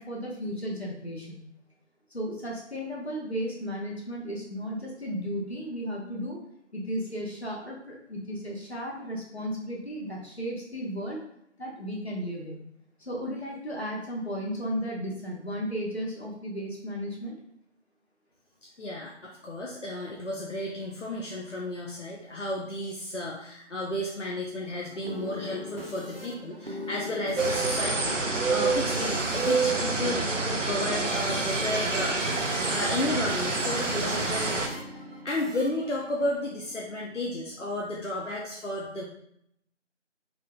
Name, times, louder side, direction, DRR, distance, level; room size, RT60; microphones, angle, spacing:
voice 1, 0.0-1.4 2.1-6.4 6.7-11.2 11.6-12.6 13.0-17.3, equal, 60° left, -3 dB, 1.2 m, -34 dB
voice 2, 18.8-35.0 35.2-39.0, left 1 dB, 80° left, -2 dB, 0.8 m, -33 dB
sound 1, 24.6-37.1, left 1 dB, 55° right, 0.5 m, -41 dB
sound 2, 27.4-34.7, right 3 dB, 85° right, 0.7 m, -27 dB
3.7 x 3.7 x 2.2 m, 0.72 s
figure-of-eight pair, 180°, 37 cm